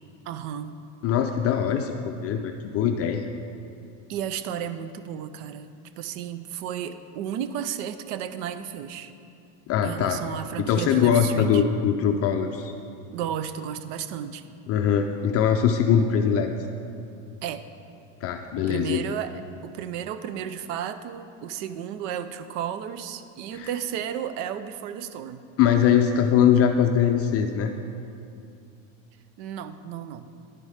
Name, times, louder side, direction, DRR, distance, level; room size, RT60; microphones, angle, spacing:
voice 1, 0.3-0.8 4.1-5.7 6.0-9.1 9.8-11.6 13.1-14.5 17.4-17.7 18.6-25.4 29.4-30.3, right 9 dB, 65° right, 12 dB, 0.6 m, -33 dB
voice 2, 1.0-3.2 9.7-10.2 10.7-12.7 14.7-16.5 18.2-19.0 23.5-23.7 25.6-27.7, left 8 dB, 35° left, 5 dB, 0.4 m, -22 dB
10.5 x 4.7 x 5.6 m, 2.5 s
supercardioid pair, 125°, 40 cm